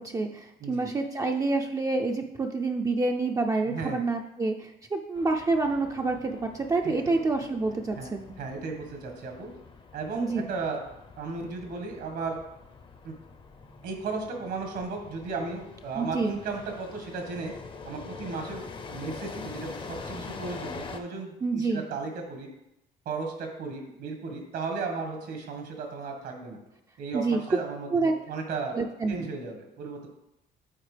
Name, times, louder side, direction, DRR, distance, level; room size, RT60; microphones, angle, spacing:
voice 1, 0.0-8.3 10.1-10.5 16.0-16.4 21.4-21.9 27.1-27.6 27.9-28.1 28.7-29.3, right 3 dB, 20° right, 3 dB, 0.4 m, -28 dB
voice 2, 0.6-0.9 3.7-4.0 6.8-7.2 7.9-9.5 9.9-10.8 11.2-12.4 13.0-13.1 13.8-17.5 17.8-22.5 23.0-26.6 27.0-28.8 29.1-30.1, right 4 dB, 75° right, 3 dB, 1.5 m, -35 dB
sound 1, 5.2-21.0, left 4 dB, 30° left, 0.6 m, -45 dB
8.8 x 4.0 x 3.3 m, 0.88 s
cardioid pair, 110°, 17 cm